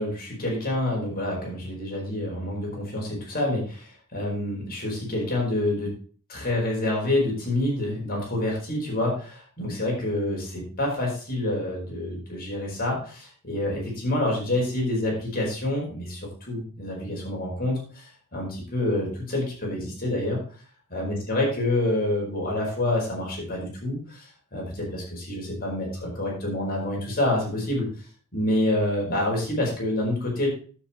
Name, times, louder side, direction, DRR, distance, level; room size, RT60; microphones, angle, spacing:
voice 1, 0.0-5.9 6.3-16.2 16.5-20.4 20.9-27.9 28.3-30.5, left 1 dB, 45° left, -2 dB, 4.9 m, -27 dB
9.8 x 8.0 x 4.4 m, 0.42 s
head